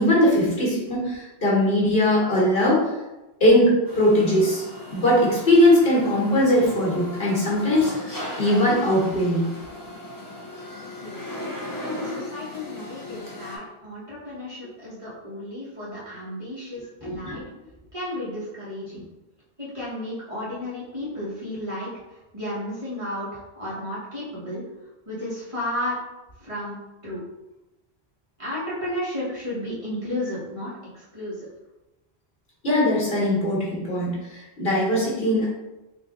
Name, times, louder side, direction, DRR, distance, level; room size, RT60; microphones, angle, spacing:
voice 1, 0.0-2.9 3.4-4.6 4.9-8.0 8.4-9.4 17.0-17.4 32.6-35.5, left 1 dB, 60° left, -6 dB, 1.5 m, -20 dB
sound 1, 3.9-13.6, left 1 dB, 25° left, 0.6 m, -37 dB
voice 2, 11.8-17.4 17.9-19.0 19.6-24.6 25.1-26.0 26.4-27.2 28.4-31.5, left 1 dB, 30° right, -9 dB, 1.2 m, -33 dB
3.7 x 2.3 x 3.7 m, 1.0 s
omnidirectional pair, 1.1 m